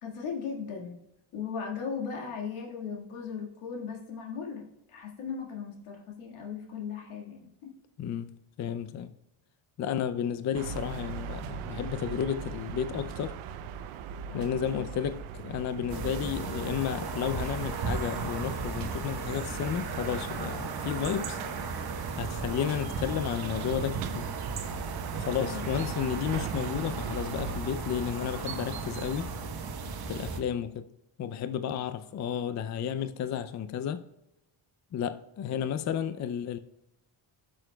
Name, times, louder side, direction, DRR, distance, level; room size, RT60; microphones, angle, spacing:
voice 1, 0.0-0.9 1.3-7.7 14.3-14.6 25.5-25.8, left 6 dB, 90° left, 1.9 m, -37 dB
voice 2, 8.0-9.1 9.8-13.4 14.3-21.4 22.2-24.3 25.2-29.3 30.1-30.8 31.2-34.0 34.9-36.6, left 9 dB, 40° left, 0.4 m, -32 dB
sound 1, 10.5-27.6, right 7 dB, 85° right, 0.7 m, -41 dB
sound 2, 15.9-30.4, right 4 dB, 50° right, 1.1 m, -35 dB
12.5 x 6.2 x 2.2 m
cardioid pair, 90°, 48 cm